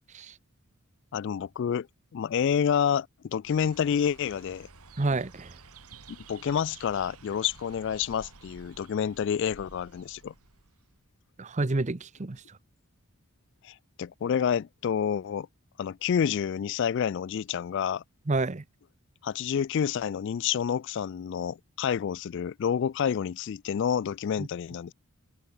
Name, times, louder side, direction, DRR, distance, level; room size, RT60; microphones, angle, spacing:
voice 1, 1.1-1.9 2.1-4.7 6.1-10.3 13.6-15.5 15.8-18.0 19.2-24.9, left 8 dB, 55° left, 0.3 m, -28 dB
sound 1, 3.4-11.1, right 4 dB, 90° right, 3.0 m, -52 dB
voice 2, 5.0-5.5 11.4-12.4 18.3-18.6 24.4-24.5, right 2 dB, 30° right, 0.7 m, -29 dB
open air
head